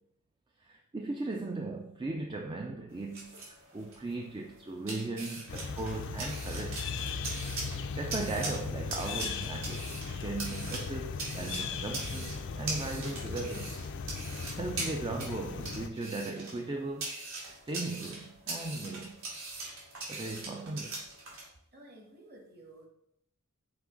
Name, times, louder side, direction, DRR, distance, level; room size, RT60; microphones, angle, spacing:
voice 1, 0.6-7.0 8.0-13.8 14.6-17.1 17.4-19.2 20.1-21.1, right 2 dB, 20° right, 0.3 m, -38 dB
sound 1, 2.9-21.4, right 2 dB, 65° right, 2.2 m, -42 dB
sound 2, 5.5-15.9, left 5 dB, 55° left, 0.4 m, -38 dB
voice 2, 21.7-22.9, right 1 dB, 45° right, 1.6 m, -53 dB
6.1 x 3.1 x 5.0 m
head